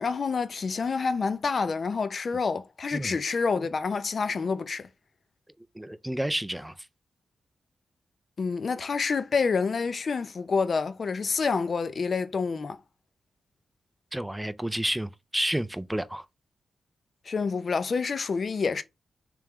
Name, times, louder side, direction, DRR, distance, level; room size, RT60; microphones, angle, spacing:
voice 1, 0.0-4.9 8.4-12.8 17.3-18.8, left 5 dB, 50° left, 0.5 m, -28 dB
voice 2, 5.8-6.7 14.1-16.2, right 1 dB, 5° right, 0.4 m, -30 dB
3.4 x 3.4 x 3.1 m
wide cardioid pair, 115°, 0 cm